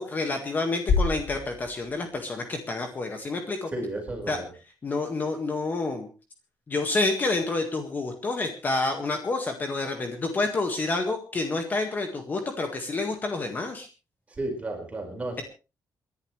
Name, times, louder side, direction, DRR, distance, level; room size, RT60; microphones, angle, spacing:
voice 1, 0.0-3.7 4.3-4.4 4.8-6.1 6.7-13.9, left 3 dB, 30° left, 5 dB, 1.8 m, -28 dB
sound 1, 0.9-3.0, left 4 dB, 75° left, 2.5 m, -29 dB
voice 2, 3.7-4.5 14.4-15.4, right 1 dB, 20° right, 2 dB, 4.8 m, -33 dB
28.5 x 11.0 x 3.3 m, 0.32 s
wide cardioid pair, 180°, 7 cm